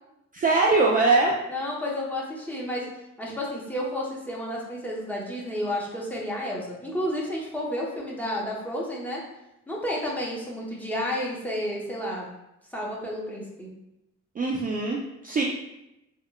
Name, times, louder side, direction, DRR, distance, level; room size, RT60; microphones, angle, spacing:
voice 1, 0.3-1.3 14.4-15.0 15.2-15.4, right 3 dB, 30° right, -2 dB, 0.4 m, -21 dB
voice 2, 1.5-2.8 3.2-9.2 9.7-12.3 12.7-13.7, left 1 dB, 5° left, -4 dB, 0.8 m, -31 dB
3.6 x 2.2 x 2.2 m, 0.88 s
cardioid pair, 90°, 30 cm